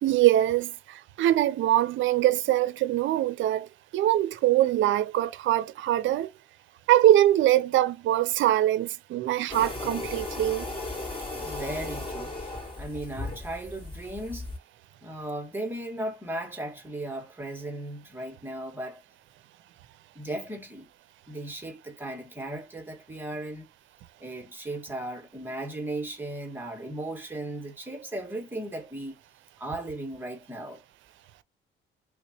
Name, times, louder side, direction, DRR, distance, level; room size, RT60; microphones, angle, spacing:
voice 1, 0.0-6.3 6.9-10.7, right 13 dB, 75° right, 0.5 m, -23 dB
sound 1, 9.5-14.6, left 2 dB, 25° left, 2.6 m, -36 dB
voice 2, 11.4-14.5 15.0-19.0 20.1-20.9 21.3-23.7 24.2-29.2 29.6-30.8, right 1 dB, 10° right, 1.6 m, -36 dB
3.4 x 2.9 x 2.8 m
cardioid pair, 90°, 20 cm